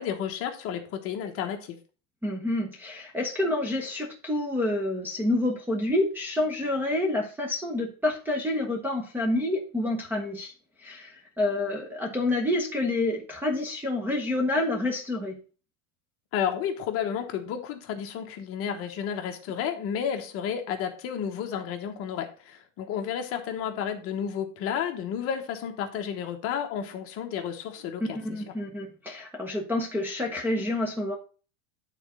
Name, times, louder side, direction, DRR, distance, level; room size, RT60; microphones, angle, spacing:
voice 1, 0.0-1.8 16.3-28.2, left 8 dB, 35° left, 5 dB, 1.1 m, -31 dB
voice 2, 2.2-10.5 10.8-15.4 28.1-31.2, left 2 dB, 5° right, 2 dB, 0.8 m, -28 dB
9.0 x 4.1 x 4.9 m, 0.36 s
supercardioid pair, 155°, 40 cm